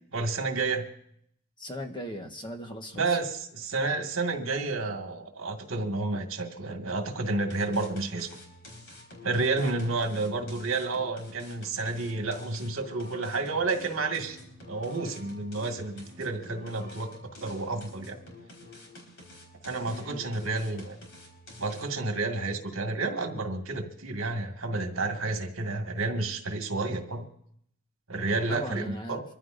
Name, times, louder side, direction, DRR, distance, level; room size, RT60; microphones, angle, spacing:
voice 1, 0.1-0.9 3.0-8.4 9.2-14.4 14.7-18.2 19.6-21.0 21.6-27.3 28.1-29.2, right 3 dB, 70° right, 3 dB, 2.0 m, -30 dB
voice 2, 1.6-3.2 19.9-20.2 28.5-29.2, equal, 20° left, 3 dB, 1.3 m, -38 dB
sound 1, 7.3-22.1, left 1 dB, 60° left, 4.6 m, -49 dB
25.0 x 15.0 x 2.6 m, 0.68 s
head